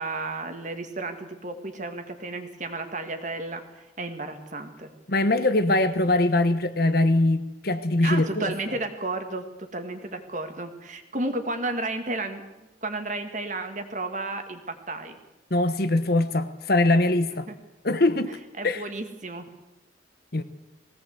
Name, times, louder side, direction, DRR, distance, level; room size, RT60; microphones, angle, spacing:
voice 1, 0.0-3.6 4.0-4.9 8.0-12.4 12.8-15.2 17.5-17.6 18.6-19.5, right 2 dB, 40° right, 2.1 m, -32 dB
voice 2, 5.1-8.5 15.5-17.4 17.8-18.4 18.6-18.9 20.3-20.4, left 2 dB, 55° left, 1.2 m, -22 dB
20.5 x 17.0 x 8.0 m
head